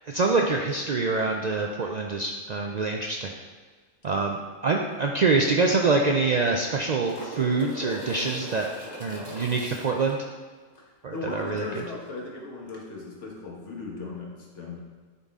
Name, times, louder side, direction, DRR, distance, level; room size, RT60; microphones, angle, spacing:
voice 1, 0.1-3.3 4.0-4.4 4.6-8.7 9.0-10.2 11.0-11.7, right 3 dB, 60° right, 1 dB, 0.4 m, -25 dB
sound 1, 4.9-5.0 5.3-5.4 6.4-10.1 12.7-12.8, equal, 20° left, 1.1 m, -40 dB
voice 2, 10.7-14.8, left 3 dB, 80° left, -2 dB, 1.6 m, -37 dB
9.6 x 4.0 x 3.6 m, 1.5 s
omnidirectional pair, 1.2 m